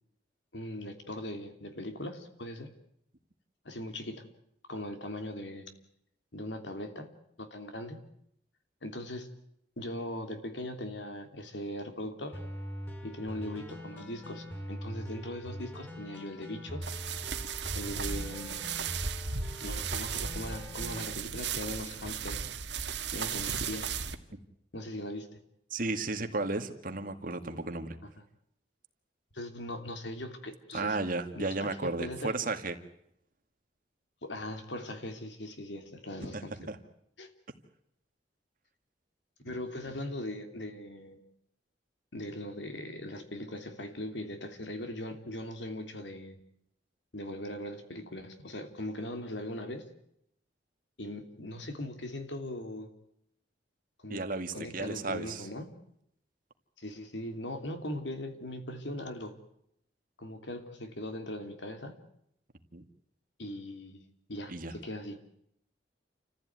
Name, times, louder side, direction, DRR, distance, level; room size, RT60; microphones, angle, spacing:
voice 1, 0.5-2.7 3.6-4.3 4.7-5.7 6.3-7.1 7.4-8.0 8.8-9.3 9.8-12.4 13.0-16.8 17.7-18.7 19.6-22.4 23.1-23.9 24.7-25.4 28.0-28.1 29.3-31.0 31.3-32.3 34.2-36.7 37.2-37.3 39.4-41.2 42.1-46.4 47.1-49.8 51.0-52.9 54.0-54.2 54.5-55.7 56.8-59.4 60.2-62.0 63.4-64.0 64.3-65.2, left 1 dB, 85° left, 7 dB, 3.1 m, -40 dB
sound 1, 12.3-21.0, equal, 15° left, 5.6 m, -42 dB
sound 2, 16.8-24.2, right 6 dB, 75° right, 1.7 m, -36 dB
voice 2, 25.7-28.0 30.7-32.7 36.3-36.8 39.5-39.6 39.8-39.9 54.1-55.5 62.7-62.9 64.5-64.7, right 3 dB, 50° right, 7 dB, 2.1 m, -34 dB
29.0 x 15.0 x 9.4 m, 0.76 s
head